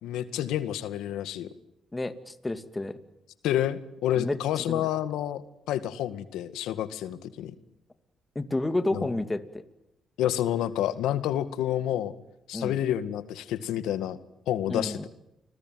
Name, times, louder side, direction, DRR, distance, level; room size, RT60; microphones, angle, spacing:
voice 1, 0.0-1.5 3.4-5.4 5.7-7.5 8.9-9.1 10.2-12.1 12.5-14.2 14.5-15.1, left 11 dB, 90° left, 12 dB, 1.9 m, -29 dB
voice 2, 1.9-3.0 4.2-4.4 4.7-4.9 8.4-9.6 12.5-12.8 14.7-15.0, left 2 dB, 15° left, 10 dB, 2.4 m, -30 dB
30.0 x 21.0 x 9.3 m, 0.86 s
cardioid pair, 90°, 0 cm